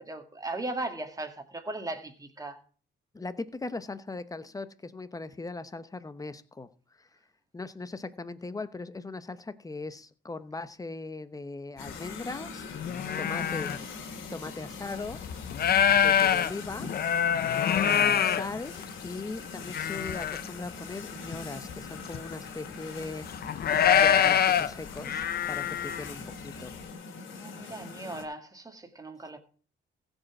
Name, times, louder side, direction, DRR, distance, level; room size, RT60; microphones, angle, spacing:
voice 1, 0.0-2.6 13.0-13.7 27.3-29.4, right 2 dB, 15° right, 1.9 m, -38 dB
voice 2, 3.1-6.7 7.0-7.1 7.5-13.9 14.3-15.2 15.9-17.0 17.8-23.6 23.9-26.7, left 3 dB, 15° left, 0.9 m, -39 dB
sound 1, 11.8-28.2, left 4 dB, 75° left, 2.5 m, -43 dB
sound 2, 11.9-12.0 12.4-13.8 14.5-14.6 15.0-19.1 19.6-20.5 20.7-20.8 21.3-21.4 21.7-22.3 23.0-26.1, left 8 dB, 50° left, 0.7 m, -25 dB
15.5 x 5.4 x 6.0 m
cardioid pair, 90°, 20 cm